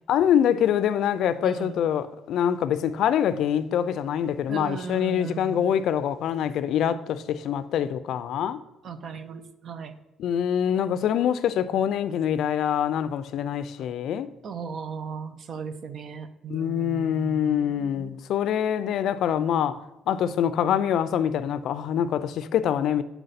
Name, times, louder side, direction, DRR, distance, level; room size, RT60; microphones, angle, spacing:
voice 1, 0.1-8.6 10.2-14.3 16.5-19.8 20.1-23.0, left 9 dB, 70° left, 0.4 m, -25 dB
voice 2, 1.4-1.8 4.5-5.7 8.8-9.9 14.4-18.1, right 6 dB, 45° right, 0.5 m, -37 dB
7.7 x 4.5 x 4.0 m
cardioid pair, 140°, 0 cm